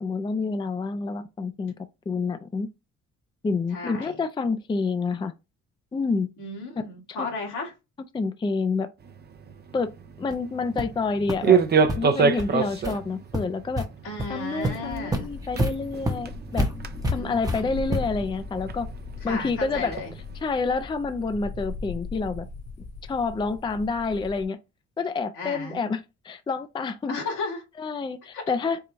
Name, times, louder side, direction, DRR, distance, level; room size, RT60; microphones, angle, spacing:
voice 1, 0.0-1.7 2.1-2.7 3.4-5.3 5.9-6.3 6.8-6.9 7.2-7.3 8.1-8.9 9.7-9.9 10.2-11.6 12.0-13.9 14.3-16.7 17.0-18.9 19.2-19.9 20.4-22.5 23.1-24.6 25.0-27.2 27.8-28.8, left 4 dB, 15° left, 0.4 m, -28 dB
voice 2, 3.7-4.2 6.4-7.7 14.0-15.3 17.2-17.7 19.2-20.1 25.3-25.8 27.1-27.6 28.3-28.4, left 3 dB, 85° left, 2.2 m, -34 dB
sound 1, 9.0-20.4, right 6 dB, 35° right, 0.6 m, -29 dB
sound 2, 10.3-10.4 10.8-10.9 11.3-11.4 11.8-12.0 12.4-12.5 12.8-13.0 13.3-13.8 14.2-14.3 14.6-18.3, equal, 10° right, 0.8 m, -29 dB
sound 3, 15.1-24.4, left 4 dB, 65° left, 1.7 m, -39 dB
4.6 x 2.2 x 3.9 m
cardioid pair, 90°, 30 cm